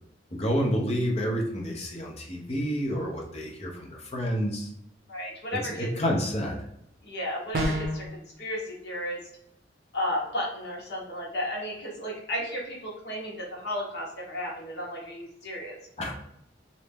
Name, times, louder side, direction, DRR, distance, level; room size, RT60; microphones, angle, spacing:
voice 1, 0.3-4.7 5.6-6.6 16.0-16.1, equal, 35° left, -1 dB, 0.7 m, -29 dB
voice 2, 5.1-5.9 7.0-8.0 8.4-9.2 9.9-15.8, equal, 65° left, -3 dB, 1.2 m, -33 dB
sound 1, 7.5-8.1, equal, 50° right, 0.7 m, -27 dB
3.1 x 2.7 x 3.4 m, 0.77 s
head